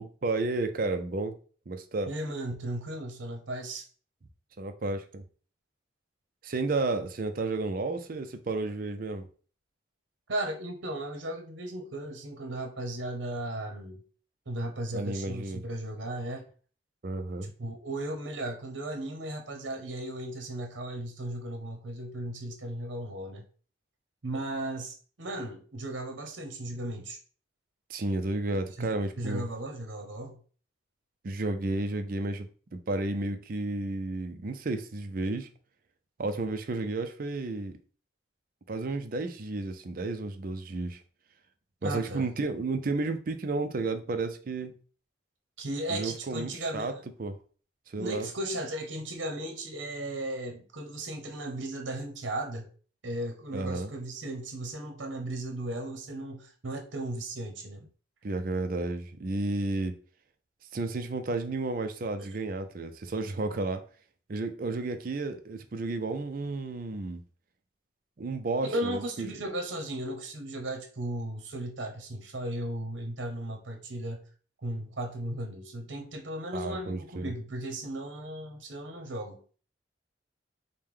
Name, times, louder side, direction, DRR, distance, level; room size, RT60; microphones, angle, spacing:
voice 1, 0.0-1.3 1.7-2.1 4.6-5.2 6.4-9.3 14.9-15.6 17.0-17.5 27.9-29.5 31.2-35.5 36.2-37.8 38.7-41.0 41.8-44.7 45.9-46.9 47.2-47.4 47.9-48.3 53.5-53.9 58.2-60.0 60.7-63.8 64.3-67.2 68.2-69.3 76.5-77.3, right 2 dB, 45° right, 0.5 m, -32 dB
voice 2, 2.1-3.9 10.3-14.0 14.5-16.4 17.4-23.4 24.2-27.2 28.8-28.9 29.2-30.4 41.8-42.3 45.6-47.0 48.0-52.7 53.0-57.9 68.6-74.2 74.6-79.4, right 1 dB, 75° right, 0.8 m, -36 dB
4.9 x 2.2 x 3.6 m
head